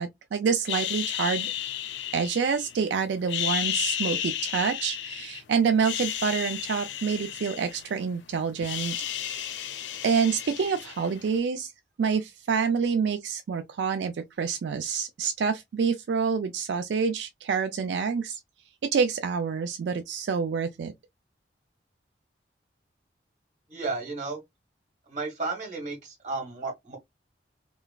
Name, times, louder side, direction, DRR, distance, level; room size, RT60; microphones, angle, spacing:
voice 1, 0.0-1.5 2.1-9.7 10.0-11.7 12.0-18.4 18.9-20.9, right 6 dB, 80° right, 0.3 m, -27 dB
sound 1, 0.7-2.8 3.2-5.4 5.7-8.2 8.4-11.3, left 11 dB, 85° left, 0.4 m, -33 dB
voice 2, 23.7-24.4 25.1-27.0, right 3 dB, 40° right, 1.4 m, -33 dB
3.0 x 2.3 x 2.2 m
head